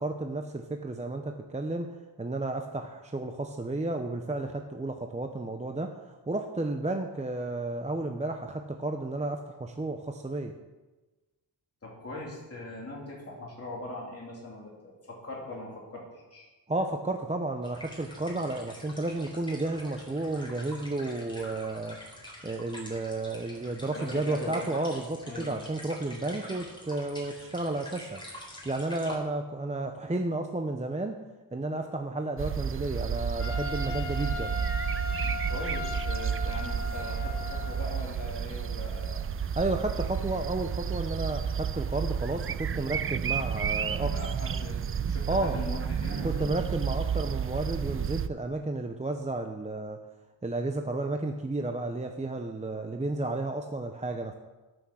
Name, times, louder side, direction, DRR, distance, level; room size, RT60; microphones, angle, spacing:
voice 1, 0.0-10.5 16.7-22.0 22.4-28.2 28.6-31.2 31.5-34.6 39.5-44.2 45.3-45.6 46.2-50.0 50.4-54.3, right 2 dB, 15° right, 5 dB, 0.7 m, -32 dB
voice 2, 11.8-16.5 23.9-24.7 25.2-25.6 35.5-39.2 43.6-44.8 45.1-46.5, left 1 dB, 35° left, -4 dB, 2.9 m, -41 dB
sound 1, 17.6-29.1, left 1 dB, 10° left, 4.0 m, -46 dB
sound 2, 32.4-48.3, right 7 dB, 35° right, 0.4 m, -31 dB
Trumpet, 33.4-38.0, left 3 dB, 75° left, 2.7 m, -37 dB
13.0 x 6.4 x 6.3 m, 1.2 s
wide cardioid pair, 95°, 43 cm